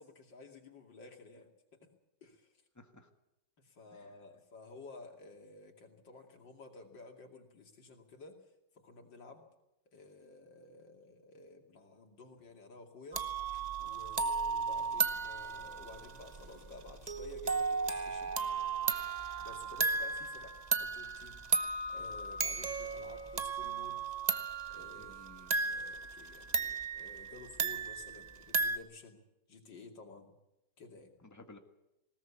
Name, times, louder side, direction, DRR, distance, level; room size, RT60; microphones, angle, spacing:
voice 1, 0.0-1.9 2.2-2.5 3.6-8.5 8.7-9.4 9.9-13.3 13.8-18.4 19.4-21.5 21.9-24.0 24.7-25.2 25.5-29.2 29.5-30.3 30.8-31.1, left 3 dB, 85° left, 2 dB, 3.3 m, -53 dB
voice 2, 2.7-3.1 3.9-4.2 25.0-25.5 31.2-31.6, left 2 dB, 10° left, 5 dB, 1.6 m, -56 dB
sound 1, 13.1-28.8, right 4 dB, 30° right, 0.8 m, -35 dB
20.0 x 18.0 x 8.4 m, 0.91 s
omnidirectional pair, 1.9 m